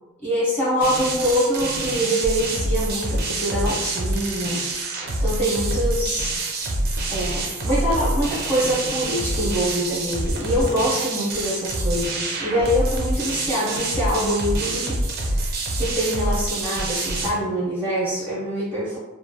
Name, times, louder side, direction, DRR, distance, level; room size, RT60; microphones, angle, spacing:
voice 1, 0.2-4.6 5.2-6.4 7.1-19.0, equal, 10° left, -9 dB, 0.8 m, -24 dB
sound 1, 0.8-17.3, right 2 dB, 45° right, 0.4 m, -26 dB
2.9 x 2.1 x 2.3 m, 1.1 s
head